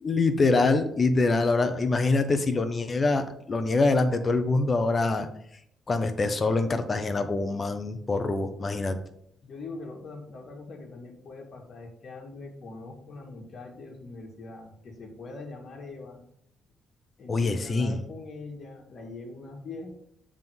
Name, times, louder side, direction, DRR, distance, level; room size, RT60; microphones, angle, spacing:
voice 1, 0.0-5.3 5.9-9.0 17.3-18.0, left 3 dB, 35° left, 8 dB, 1.0 m, -24 dB
voice 2, 9.4-16.2 17.2-19.9, left 3 dB, 55° left, 2 dB, 1.9 m, -42 dB
7.5 x 3.8 x 6.1 m, 0.70 s
cardioid pair, 90°, 0 cm